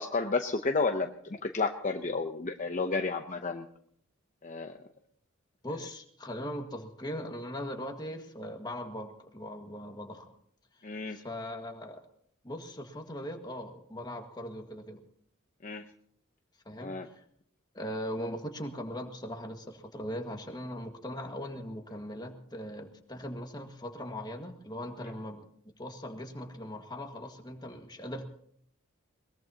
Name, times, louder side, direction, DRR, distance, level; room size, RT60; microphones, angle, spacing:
voice 1, 0.0-3.7 4.4-4.7 10.8-11.2 15.6-15.9 16.8-17.1, left 3 dB, 35° left, 5 dB, 0.8 m, -31 dB
voice 2, 5.6-10.3 11.1-12.0 12.4-15.0 16.7-17.2 17.7-25.5 25.8-28.3, equal, 20° left, 4 dB, 1.8 m, -40 dB
22.0 x 20.5 x 2.9 m, 0.66 s
head